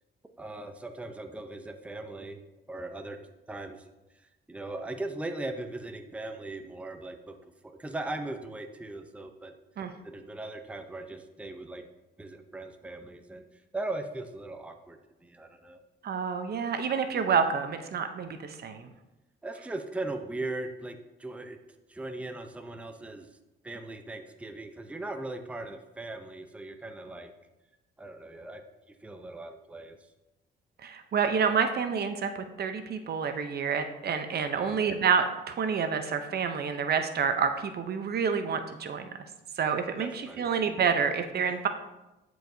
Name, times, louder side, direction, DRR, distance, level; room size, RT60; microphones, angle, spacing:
voice 1, 0.4-2.4 2.7-3.2 3.5-3.8 4.5-9.5 10.0-11.8 12.2-13.4 13.7-15.8 19.4-21.6 21.9-23.3 23.6-27.3 28.0-28.6 28.9-30.0 34.5-34.8 40.0-40.5 41.5-41.7, right 2 dB, 5° right, 5 dB, 0.6 m, -39 dB
voice 2, 16.0-18.9 30.8-39.1 39.6-41.7, right 6 dB, 55° right, 8 dB, 0.7 m, -28 dB
12.5 x 4.7 x 2.7 m, 1.0 s
cardioid pair, 90°, 20 cm